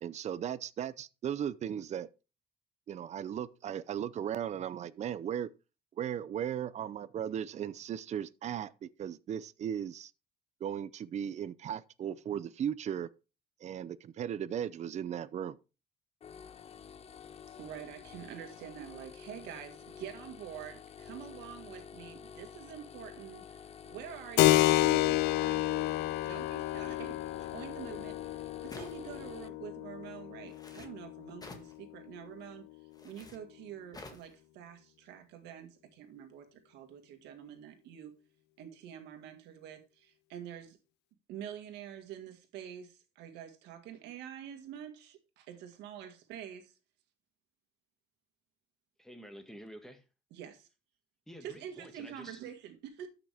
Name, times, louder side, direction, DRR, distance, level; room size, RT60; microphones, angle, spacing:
voice 1, 0.0-2.1 2.9-5.5 6.0-10.1 10.6-13.1 13.6-15.6, right 9 dB, 45° right, 0.6 m, -37 dB
sound 1, 16.2-29.5, left 7 dB, 35° left, 0.6 m, -50 dB
voice 2, 17.6-32.6 33.0-38.1 38.6-40.8 41.3-46.7 50.3-50.7 51.4-53.1, right 9 dB, 90° right, 1.9 m, -47 dB
Keyboard (musical), 24.4-32.6, left 16 dB, 85° left, 0.6 m, -30 dB
sound 2, 28.7-29.3 30.5-30.9 31.4-31.7 32.9-33.4 33.9-34.3, left 3 dB, 20° left, 1.8 m, -49 dB
voice 3, 49.0-50.0 51.3-52.4, equal, ahead, 1.9 m, -49 dB
13.0 x 6.0 x 3.5 m
cardioid pair, 110°, 17 cm